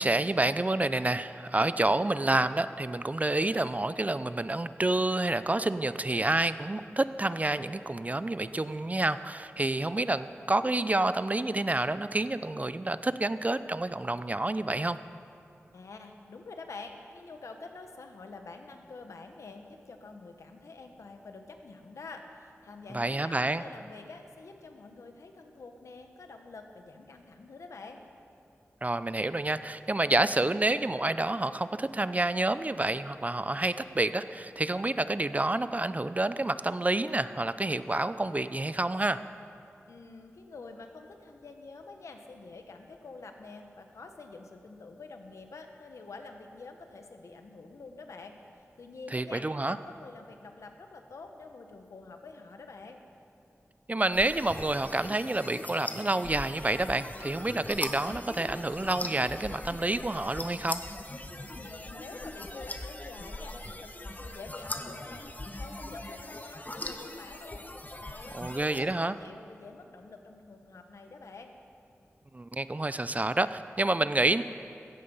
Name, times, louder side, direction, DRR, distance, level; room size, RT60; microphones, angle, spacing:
voice 1, 0.0-15.0 22.9-23.6 28.8-39.2 49.1-49.8 53.9-60.8 68.3-69.2 72.3-74.4, right 2 dB, 30° right, 13 dB, 0.6 m, -28 dB
voice 2, 15.7-28.1 39.9-48.3 48.8-53.0 61.5-67.6 68.0-71.5, left 3 dB, 85° left, 5 dB, 1.3 m, -47 dB
sound 1, 54.1-68.8, left 1 dB, 35° left, 1.3 m, -40 dB
16.0 x 14.0 x 5.6 m, 2.6 s
cardioid pair, 40°, 5 cm